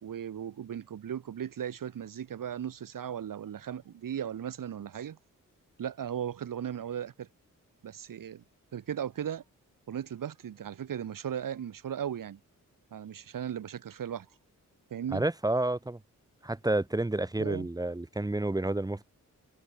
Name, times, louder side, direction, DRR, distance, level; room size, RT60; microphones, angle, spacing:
voice 1, 0.0-5.2 5.8-7.3 7.8-8.4 8.7-9.4 9.9-12.4 12.9-14.3 14.9-15.2 17.4-17.7, right 9 dB, 80° right, 1.8 m, -37 dB
voice 2, 15.1-16.0 16.4-19.1, right 2 dB, 10° right, 1.2 m, -30 dB
wide cardioid pair, 150°, 32 cm